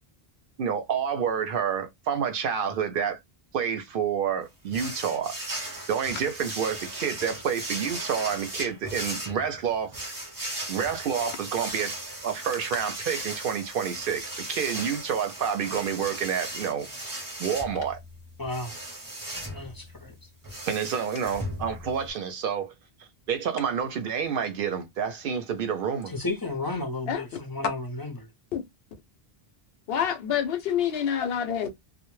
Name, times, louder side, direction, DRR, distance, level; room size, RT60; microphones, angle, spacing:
voice 1, 0.6-3.2 3.5-5.3 5.9-9.9 10.7-11.9 12.2-16.9 17.4-18.0 20.7-22.7 23.3-26.1, right 7 dB, 65° right, 0.7 m, -28 dB
sound 1, 4.7-22.1, right 1 dB, 25° right, 0.6 m, -37 dB
voice 2, 18.4-18.7 19.4-20.1 26.1-28.3, left 2 dB, 25° left, 0.5 m, -33 dB
voice 3, 29.9-31.7, left 9 dB, 75° left, 0.8 m, -27 dB
2.1 x 2.1 x 3.0 m
omnidirectional pair, 1.0 m